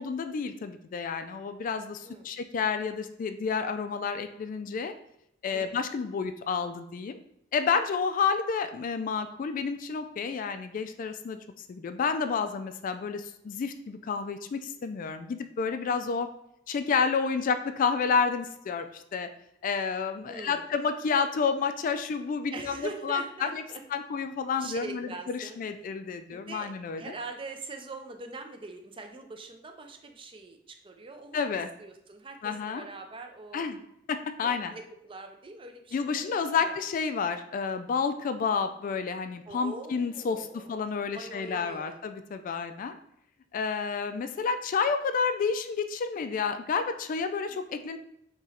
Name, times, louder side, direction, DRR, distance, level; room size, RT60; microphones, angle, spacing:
voice 1, 0.0-4.9 5.4-7.2 7.5-11.4 11.7-16.3 16.7-19.3 19.6-23.6 23.9-27.1 31.3-31.7 32.4-32.8 33.5-33.8 34.1-34.7 35.9-43.0 43.5-48.0, left 5 dB, 45° left, 9 dB, 0.3 m, -30 dB
voice 2, 20.2-20.6 22.5-23.8 24.6-25.6 26.3-26.7 27.0-31.5 31.8-33.6 34.4-36.8 39.5-40.8 41.1-42.0 47.5-47.6, right 3 dB, 30° right, 4 dB, 0.5 m, -43 dB
3.7 x 3.0 x 4.2 m, 0.77 s
head